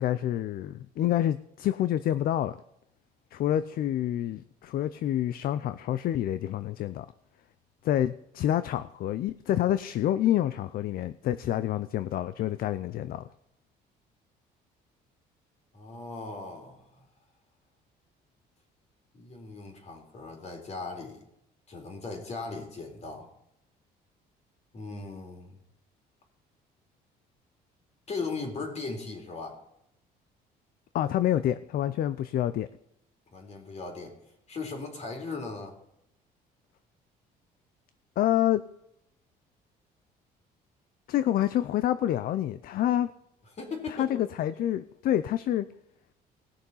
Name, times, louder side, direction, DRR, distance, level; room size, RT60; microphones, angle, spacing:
voice 1, 0.0-2.6 3.3-7.1 7.8-13.2 30.9-32.7 38.2-38.6 41.1-43.1 43.9-45.7, left 12 dB, 60° left, 0.5 m, -27 dB
voice 2, 15.7-17.1 19.1-21.2 21.7-23.3 24.7-25.6 28.1-29.6 33.3-34.1 34.5-35.7 43.6-44.1, left 3 dB, 40° left, 3.8 m, -38 dB
19.0 x 6.6 x 5.5 m
cardioid pair, 110°, 17 cm